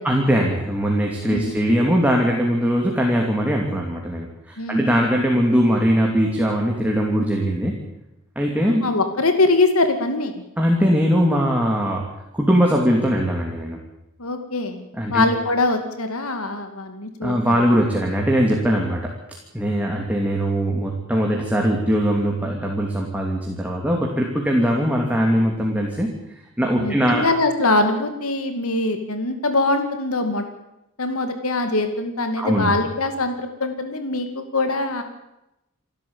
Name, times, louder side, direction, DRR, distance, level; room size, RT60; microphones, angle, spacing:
voice 1, 0.0-7.8 8.3-8.8 10.6-12.1 12.3-13.8 14.9-15.2 17.2-19.1 19.5-26.1 26.6-27.2 32.4-32.7, equal, 5° right, 0 dB, 2.8 m, -20 dB
voice 2, 4.6-4.9 8.6-10.4 14.2-17.6 26.8-30.4 31.0-35.0, left 2 dB, 85° left, 7 dB, 2.5 m, -23 dB
28.5 x 12.5 x 8.8 m, 0.89 s
head